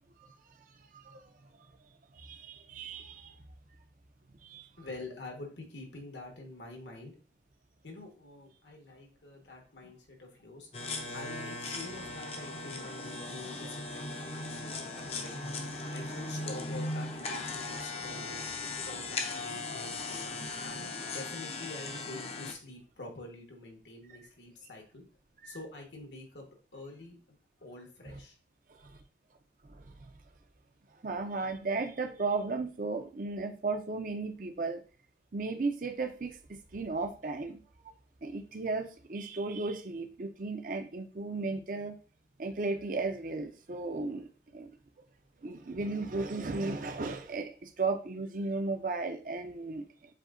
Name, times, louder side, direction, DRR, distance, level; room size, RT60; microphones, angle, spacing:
voice 1, 2.1-3.3 4.4-4.7 25.4-25.6 28.8-29.0 29.6-30.1 31.0-34.8 35.3-37.6 37.8-37.9 38.2-42.0 42.4-44.7 45.4-49.9, right 3 dB, 45° right, 6 dB, 0.6 m, -35 dB
voice 2, 4.8-7.1 7.8-10.7 11.1-15.4 15.9-18.5 18.8-25.0 25.4-26.5 26.7-28.4, left 2 dB, 80° left, 1 dB, 1.4 m, -46 dB
sound 1, 10.7-22.5, left 3 dB, 35° left, 0.6 m, -38 dB
7.5 x 2.7 x 2.6 m, 0.37 s
head